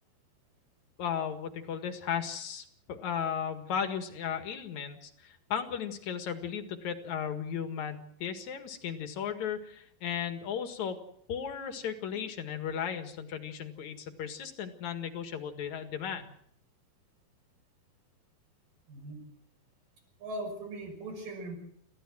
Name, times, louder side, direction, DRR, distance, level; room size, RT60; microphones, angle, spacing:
voice 1, 1.0-11.0 11.3-16.3, left 8 dB, 55° left, 7 dB, 3.0 m, -35 dB
voice 2, 18.9-19.3 20.2-21.6, right 1 dB, 60° right, 3 dB, 7.6 m, -39 dB
29.0 x 15.5 x 6.3 m, 0.68 s
omnidirectional pair, 4.3 m